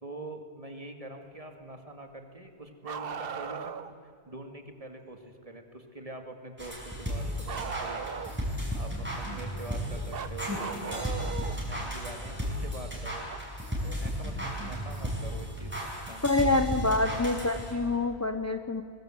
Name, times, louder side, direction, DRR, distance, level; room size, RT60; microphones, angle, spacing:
voice 1, 0.0-3.8 4.3-8.3 8.7-11.2 11.7-13.3 13.8-16.5, right 1 dB, 30° right, 5 dB, 2.3 m, -44 dB
Bark, 2.8-3.9 7.5-8.5 10.1-11.6 13.3-13.4 15.3-15.4 16.5-16.6, right 7 dB, 60° right, 1.1 m, -37 dB
sound 1, 6.6-17.9, equal, 10° right, 5.6 m, -34 dB
voice 2, 16.2-18.8, left 2 dB, 15° left, 8 dB, 0.7 m, -26 dB
21.5 x 21.5 x 7.8 m, 2.5 s
omnidirectional pair, 1.1 m